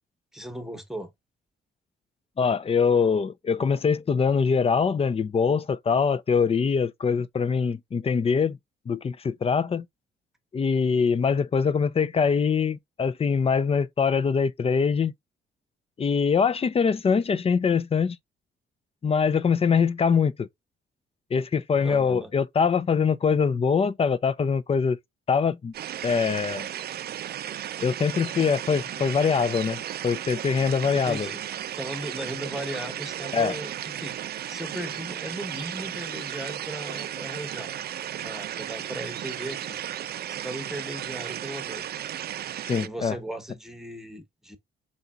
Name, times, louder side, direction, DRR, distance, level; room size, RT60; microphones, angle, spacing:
voice 1, 0.3-1.1 21.8-22.3 30.9-31.4 31.8-34.2 34.5-37.7 38.2-39.8 40.3-42.1 42.8-44.6, right 1 dB, ahead, 1.1 m, -37 dB
voice 2, 2.4-8.6 8.9-9.9 10.5-15.1 16.0-18.2 19.0-20.5 21.3-25.0 25.3-25.7 26.0-26.7 27.8-31.3 33.3-33.6 42.7-43.2, left 6 dB, 30° left, 0.5 m, -23 dB
sound 1, 25.7-42.9, right 11 dB, 55° right, 0.4 m, -35 dB
4.1 x 4.0 x 2.3 m
cardioid pair, 90°, 20 cm